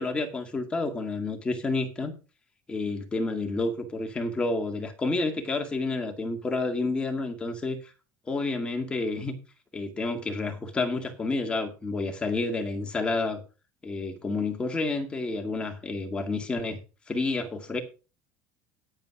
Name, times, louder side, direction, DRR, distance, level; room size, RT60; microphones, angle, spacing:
voice 1, 0.0-2.1 2.7-7.8 8.3-9.4 9.7-13.4 13.8-16.8 17.1-17.8, left 3 dB, 15° left, 2.1 m, -29 dB
10.0 x 8.9 x 4.8 m
cardioid pair, 165°, 7 cm